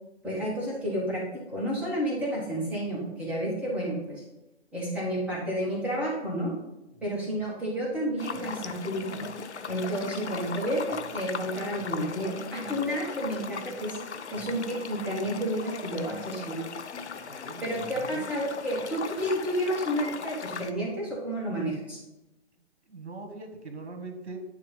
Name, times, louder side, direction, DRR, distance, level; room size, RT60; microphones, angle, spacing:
voice 1, 0.2-1.2 1.5-4.2 4.7-6.5 7.0-9.2 9.7-14.0 14.3-16.7 17.6-22.0, equal, 5° right, -6 dB, 1.5 m, -31 dB
sound 1, 8.2-20.7, left 6 dB, 75° left, 0.6 m, -39 dB
sound 2, 8.2-18.5, equal, 15° left, 2.0 m, -48 dB
voice 2, 17.3-18.3 22.9-24.4, right 3 dB, 65° right, 4 dB, 1.7 m, -42 dB
9.7 x 3.4 x 5.4 m, 0.95 s
figure-of-eight pair, 135°, 34 cm